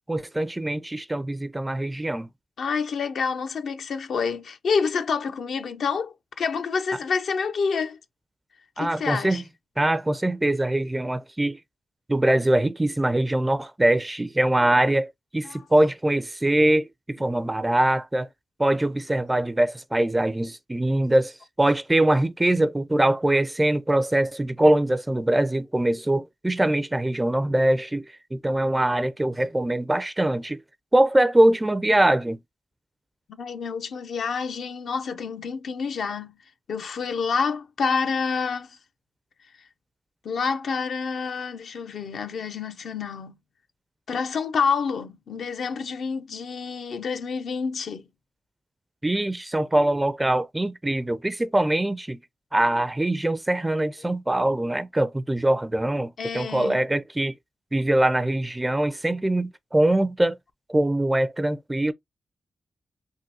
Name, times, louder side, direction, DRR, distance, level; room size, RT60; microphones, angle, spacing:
voice 1, 0.1-2.3 8.8-9.4 9.8-11.6 12.1-18.3 18.6-28.1 28.3-30.6 30.9-32.4 49.0-52.2 52.5-57.4 57.7-60.4 60.7-61.9, right 1 dB, 15° right, 0.4 m, -23 dB
voice 2, 2.6-8.0 8.8-9.4 15.4-15.6 17.4-17.5 33.4-36.4 36.7-38.8 40.2-43.4 44.1-48.1 56.2-56.8, left 5 dB, 75° left, 0.6 m, -28 dB
3.7 x 2.6 x 2.6 m
cardioid pair, 70°, 0 cm